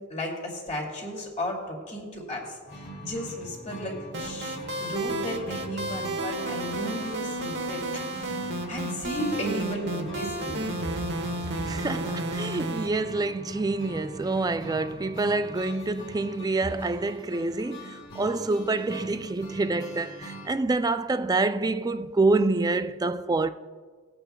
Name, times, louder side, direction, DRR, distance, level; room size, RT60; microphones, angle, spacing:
voice 1, 0.0-10.6, equal, 35° left, 2.5 m, -35 dB
sound 1, 2.7-20.5, right 1 dB, 60° left, 2.5 m, -42 dB
sound 2, 4.1-12.9, right 1 dB, 55° right, 1.1 m, -32 dB
voice 2, 11.7-23.5, right 3 dB, 20° right, 0.3 m, -27 dB
21.0 x 8.9 x 2.3 m
head